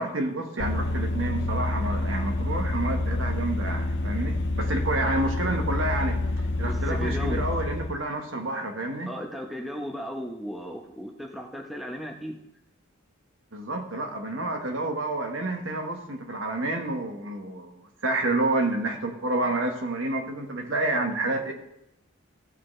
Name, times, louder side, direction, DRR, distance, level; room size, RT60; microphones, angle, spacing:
voice 1, 0.0-9.1 13.5-21.5, right 2 dB, 60° right, 3 dB, 1.4 m, -29 dB
Vehicle, 0.6-7.9, left 2 dB, 55° left, 0.6 m, -28 dB
voice 2, 6.7-7.4 9.1-12.4, equal, ahead, 1 dB, 0.8 m, -35 dB
15.5 x 6.9 x 3.3 m, 0.83 s
head